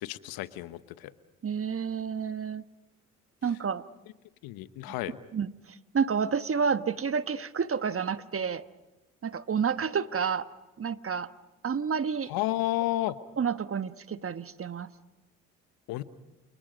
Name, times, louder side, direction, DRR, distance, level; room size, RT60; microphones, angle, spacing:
voice 1, 0.0-1.1 4.4-5.2 12.3-13.2 15.9-16.0, left 16 dB, 75° left, 14 dB, 1.1 m, -31 dB
voice 2, 1.4-2.6 3.4-3.8 5.3-8.6 9.2-10.5 10.8-11.3 11.6-12.3 13.4-14.9, right 6 dB, 35° right, 12 dB, 1.2 m, -30 dB
28.5 x 28.5 x 5.2 m, 1.1 s
hypercardioid pair, 50°, 37 cm